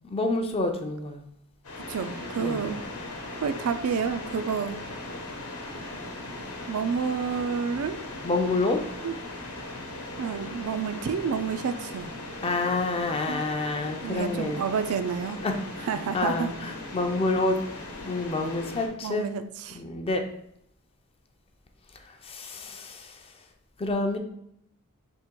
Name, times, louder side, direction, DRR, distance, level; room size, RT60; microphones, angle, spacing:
voice 1, 0.0-1.3 2.4-2.6 8.2-8.8 12.4-14.7 15.4-15.9 16.1-17.6 18.0-19.3 19.7-20.2 22.0-23.3 23.8-24.2, left 2 dB, 25° left, 4 dB, 0.5 m, -28 dB
sound 1, 1.6-18.9, left 2 dB, 75° left, 1.0 m, -39 dB
voice 2, 1.9-2.8 3.4-4.8 6.7-8.0 9.0-9.2 10.2-12.1 13.3-13.4 14.0-15.4 15.9-16.5 19.0-19.8, right 6 dB, 70° right, 10 dB, 0.4 m, -29 dB
3.6 x 2.9 x 4.5 m, 0.71 s
head